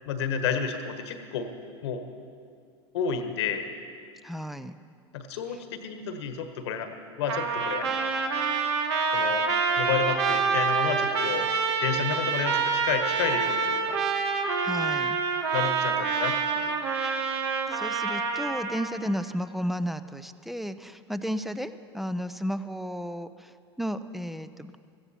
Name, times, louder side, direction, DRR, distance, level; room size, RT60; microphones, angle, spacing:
voice 1, 0.0-1.5 1.8-2.0 2.9-3.6 5.1-6.9 7.2-7.9 9.1-9.4 9.8-11.5 11.8-14.0 15.5-16.7, left 7 dB, 70° left, 7 dB, 1.3 m, -30 dB
voice 2, 4.2-4.8 14.6-15.2 17.2-17.5 17.7-23.5 23.8-24.7, equal, ahead, 12 dB, 0.5 m, -33 dB
Trumpet, 7.3-18.9, right 5 dB, 70° right, 1.2 m, -27 dB
16.5 x 14.5 x 4.3 m, 2.3 s
hypercardioid pair, 80°, 15 cm